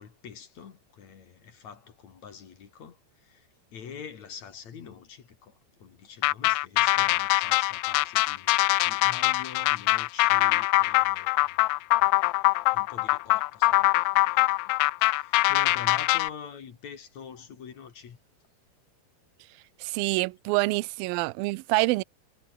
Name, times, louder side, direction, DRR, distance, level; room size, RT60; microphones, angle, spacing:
voice 1, 0.0-11.6 12.0-18.2, left 7 dB, 50° left, 3.1 m, -45 dB
sound 1, 6.2-16.3, left 20 dB, 80° left, 2.5 m, -23 dB
voice 2, 19.8-22.0, right 23 dB, 85° right, 2.1 m, -26 dB
omnidirectional pair, 4.9 m